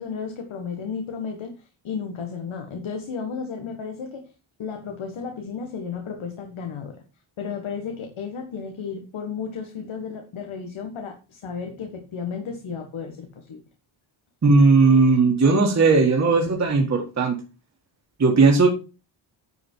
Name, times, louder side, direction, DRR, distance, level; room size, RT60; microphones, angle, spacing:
voice 1, 0.0-4.3 4.6-7.0 7.4-13.6, left 6 dB, 85° left, 4 dB, 1.6 m, -33 dB
voice 2, 14.4-17.4 18.2-18.7, right 4 dB, 35° right, -1 dB, 1.9 m, -17 dB
10.5 x 5.7 x 4.6 m, 0.32 s
wide cardioid pair, 140°, 47 cm